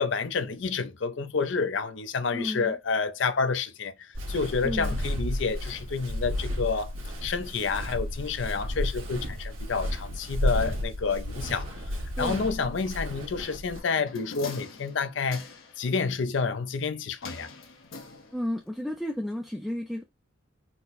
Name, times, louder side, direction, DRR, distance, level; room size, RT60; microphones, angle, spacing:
voice 1, 0.0-3.9 4.3-6.9 7.2-11.7 12.2-15.5 15.8-17.5, left 5 dB, 65° left, 0.5 m, -29 dB
voice 2, 2.3-2.8 4.6-5.0 12.2-12.5 18.3-20.0, left 1 dB, ahead, 0.4 m, -32 dB
Walk footsteps, 4.1-13.8, equal, 85° right, 1.6 m, -32 dB
sound 1, 13.8-15.9 17.2-18.7 18.9-19.0, left 4 dB, 80° left, 1.0 m, -44 dB
4.2 x 2.1 x 4.0 m
head